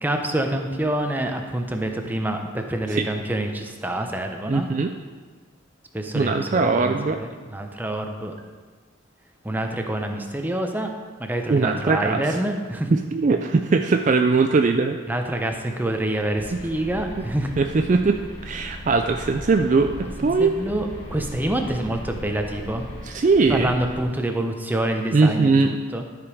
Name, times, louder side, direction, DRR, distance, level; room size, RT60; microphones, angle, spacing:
voice 1, 0.0-4.7 5.9-8.3 9.4-10.9 11.2-12.9 15.1-17.5 20.4-22.9 23.5-26.1, right 1 dB, 10° right, 4 dB, 0.7 m, -27 dB
voice 2, 4.5-4.9 6.1-7.2 11.5-12.2 12.9-15.0 17.6-19.9 20.2-20.6 23.0-23.7 25.1-25.7, right 4 dB, 35° right, 5 dB, 0.3 m, -20 dB
sound 1, 16.3-24.0, left 1 dB, 30° left, 2.9 m, -38 dB
12.5 x 5.1 x 4.9 m, 1.5 s
head